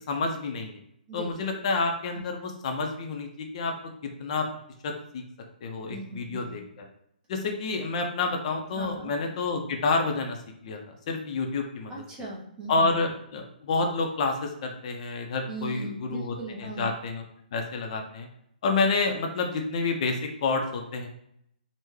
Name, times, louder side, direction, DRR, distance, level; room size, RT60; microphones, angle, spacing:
voice 1, 0.1-0.8 1.1-3.7 4.2-4.5 4.8-5.2 5.6-6.6 7.3-10.4 10.6-10.8 11.1-11.9 12.7-17.2 17.5-18.3 18.6-21.1, left 3 dB, 45° left, 3 dB, 0.5 m, -29 dB
voice 2, 1.1-1.7 2.1-2.2 5.9-6.6 8.7-9.1 11.9-13.0 15.5-16.9, right 2 dB, 15° right, -3 dB, 0.6 m, -39 dB
3.4 x 2.1 x 3.1 m, 0.73 s
hypercardioid pair, 150°, 5 cm